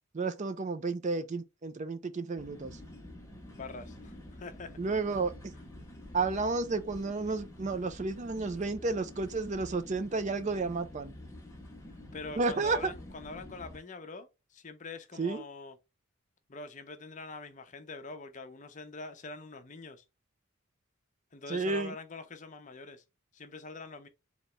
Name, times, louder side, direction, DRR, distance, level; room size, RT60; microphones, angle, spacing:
voice 1, 0.1-2.8 4.8-5.3 6.1-11.2 12.4-12.8 15.2-15.4 21.5-21.9, right 3 dB, 35° right, 0.4 m, -32 dB
sound 1, 2.4-13.8, left 1 dB, 15° left, 1.0 m, -48 dB
voice 2, 3.5-4.8 12.1-15.8 16.5-20.0 21.3-23.0 23.3-24.1, left 3 dB, 35° left, 0.7 m, -44 dB
4.0 x 2.9 x 3.3 m
head